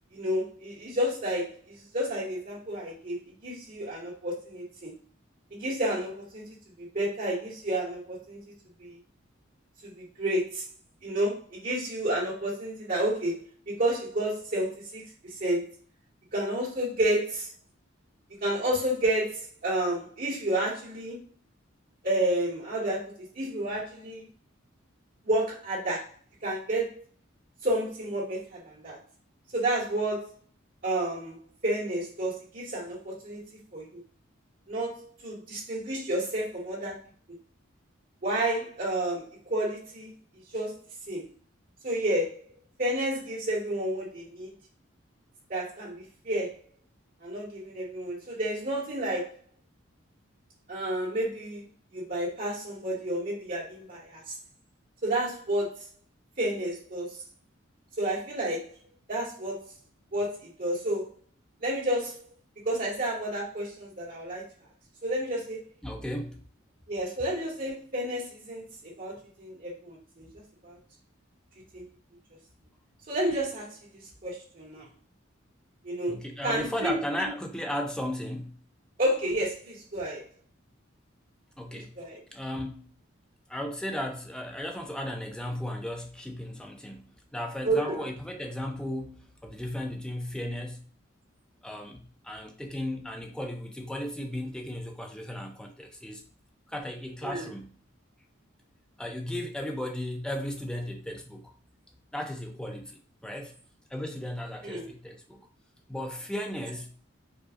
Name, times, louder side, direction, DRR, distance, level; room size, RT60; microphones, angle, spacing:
voice 1, 0.1-4.9 5.5-6.4 6.8-8.4 8.8-8.9 9.8-10.6 11.0-13.4 13.7-15.0 15.4-15.7 16.3-17.5 18.4-21.2 22.0-24.3 25.2-26.1 26.4-27.0 27.6-29.0 29.5-30.3 30.8-31.4 31.6-33.4 33.7-34.0 34.7-37.0 38.2-40.1 40.5-40.8 41.1-41.2 41.8-42.4 42.8-44.5 45.5-45.9 46.2-46.6 47.2-49.4 50.7-51.6 51.9-54.3 55.0-55.9 56.4-57.2 58.0-58.7 59.1-59.7 60.1-61.1 61.6-62.2 62.6-64.4 65.0-65.6 66.9-70.3 70.6-70.8 71.7-71.8 73.1-73.8 74.2-74.9 75.8-77.3 79.0-80.2 81.7-82.2 87.6-88.1 97.2-97.4 104.6-104.8, right 1 dB, 45° right, 1.8 m, -30 dB
voice 2, 65.8-66.4 76.1-78.6 81.6-81.9 82.3-82.9 83.5-90.9 91.6-96.2 96.7-97.8 99.0-101.5 102.1-103.5 103.9-105.5 105.9-106.9, left 1 dB, 5° left, 0.4 m, -35 dB
4.4 x 2.4 x 2.5 m
head